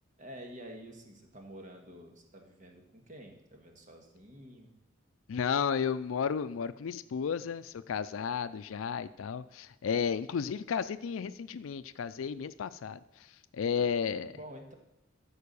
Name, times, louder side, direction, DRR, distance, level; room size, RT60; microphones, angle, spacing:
voice 1, 0.2-4.7 13.8-14.0 14.2-14.7, equal, 40° right, 3 dB, 1.7 m, -49 dB
voice 2, 5.3-14.3, left 6 dB, 80° left, 14 dB, 0.4 m, -33 dB
13.5 x 4.7 x 6.9 m, 0.88 s
head